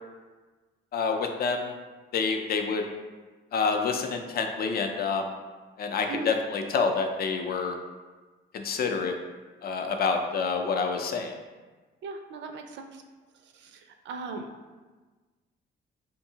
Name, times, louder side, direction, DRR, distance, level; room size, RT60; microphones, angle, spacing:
voice 1, 0.9-1.7 2.1-2.9 3.5-5.3 5.8-7.7 8.5-9.2 9.6-11.3, left 5 dB, 50° left, 4 dB, 0.4 m, -27 dB
voice 2, 12.0-13.0 13.5-14.5, right 4 dB, 65° right, 5 dB, 0.4 m, -38 dB
2.7 x 2.6 x 2.7 m, 1.3 s
cardioid pair, 90°, 20 cm